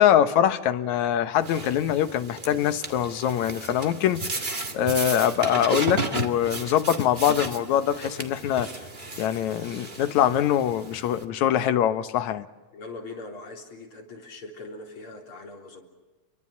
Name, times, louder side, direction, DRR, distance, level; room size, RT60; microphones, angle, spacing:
voice 1, 0.0-4.3 4.7-8.7 9.2-12.5, left 10 dB, 75° left, 11 dB, 2.3 m, -23 dB
sound 1, 1.4-11.2, right 2 dB, 20° right, 1.4 m, -34 dB
voice 2, 12.7-15.9, left 2 dB, 45° left, 1 dB, 4.5 m, -41 dB
29.0 x 23.5 x 7.2 m, 1.3 s
omnidirectional pair, 3.3 m